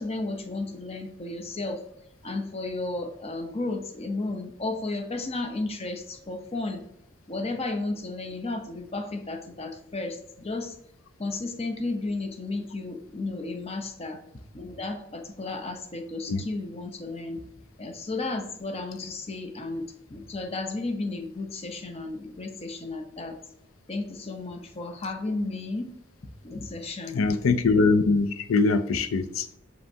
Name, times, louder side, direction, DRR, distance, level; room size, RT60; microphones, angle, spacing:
voice 1, 0.0-1.8 2.2-6.8 7.3-10.7 11.2-14.2 14.5-17.4 17.8-19.9 20.1-23.4 23.9-25.8 26.4-27.2, left 2 dB, 30° left, 0.6 m, -33 dB
voice 2, 27.1-29.5, left 3 dB, 90° left, 0.4 m, -22 dB
6.5 x 5.6 x 2.7 m
head